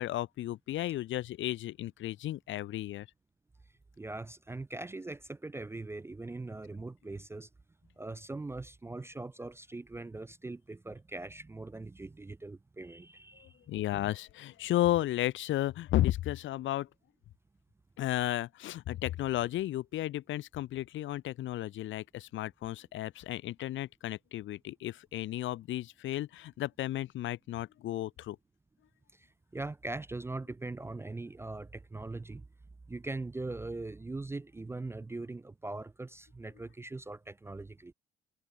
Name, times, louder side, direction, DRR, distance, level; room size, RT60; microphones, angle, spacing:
voice 1, 0.0-3.1 13.7-16.9 18.0-28.4, left 14 dB, 75° left, 0.8 m, -33 dB
voice 2, 4.0-7.5 8.0-13.6 29.5-32.4 32.9-37.9, right 2 dB, 15° right, 0.3 m, -41 dB
cardioid pair, 90°, 20 cm